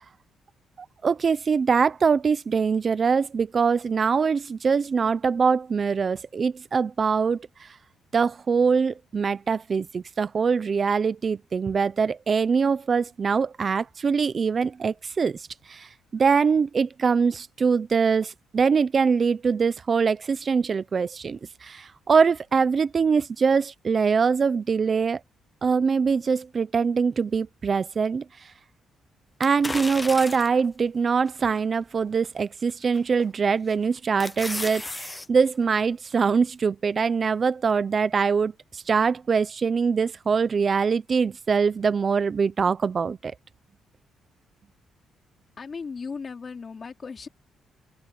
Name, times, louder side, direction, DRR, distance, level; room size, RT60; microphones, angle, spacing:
voice 1, 1.0-7.7 8.1-25.2 25.6-28.2 29.4-43.3, right 5 dB, 40° right, 0.7 m, -23 dB
sound 1, 29.4-30.7 31.3-31.4 32.9-33.3 33.7-35.3 35.6-35.7, left 2 dB, 15° left, 0.9 m, -34 dB
voice 2, 45.6-47.3, left 5 dB, 40° left, 3.9 m, -36 dB
open air
cardioid pair, 90°, 0 cm